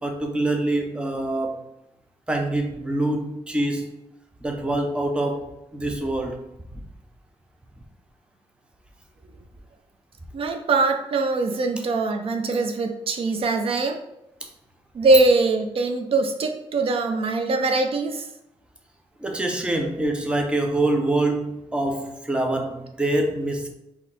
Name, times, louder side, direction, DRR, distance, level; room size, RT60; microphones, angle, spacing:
voice 1, 0.0-1.6 2.3-3.9 4.4-5.5 5.7-6.4 6.7-6.8 19.2-23.7, right 2 dB, 10° right, 3 dB, 0.6 m, -25 dB
voice 2, 10.3-14.0 14.9-18.2, right 3 dB, 60° right, 5 dB, 0.4 m, -22 dB
4.1 x 2.7 x 4.1 m, 0.85 s
wide cardioid pair, 150°, 11 cm